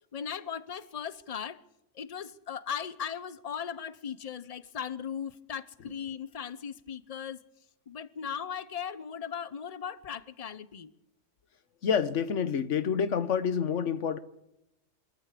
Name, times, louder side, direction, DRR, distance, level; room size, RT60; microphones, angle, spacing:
voice 1, 0.1-1.6 1.9-7.4 7.9-10.9, left 8 dB, 35° left, 0.8 m, -38 dB
voice 2, 11.8-14.2, left 7 dB, 85° left, 1.4 m, -28 dB
24.0 x 14.0 x 8.4 m
omnidirectional pair, 1.2 m